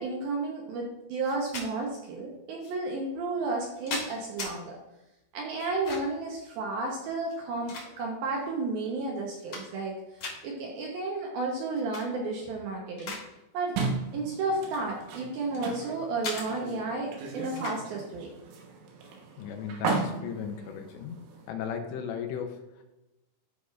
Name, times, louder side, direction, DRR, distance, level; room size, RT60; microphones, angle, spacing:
voice 1, 0.0-4.8 5.3-10.0 10.4-13.2 13.5-13.8 14.1-18.3, right 3 dB, 75° right, -1 dB, 2.3 m, -32 dB
sound 1, 1.2-1.7 2.6-2.7 3.5-4.5 5.6-6.2 7.2-8.3 8.8-8.9 9.2-9.9 10.2-10.4 11.7-12.1 12.5-13.3 13.6-13.8 14.6-15.7 16.2-16.5 17.6-17.8, left 3 dB, 55° left, 1.7 m, -38 dB
sound 2, 13.8-21.5, right 4 dB, 90° right, 3.6 m, -36 dB
voice 2, 19.4-21.2 21.5-22.8, left 7 dB, 80° left, 4 dB, 2.8 m, -36 dB
13.0 x 4.8 x 2.4 m, 0.97 s
omnidirectional pair, 5.4 m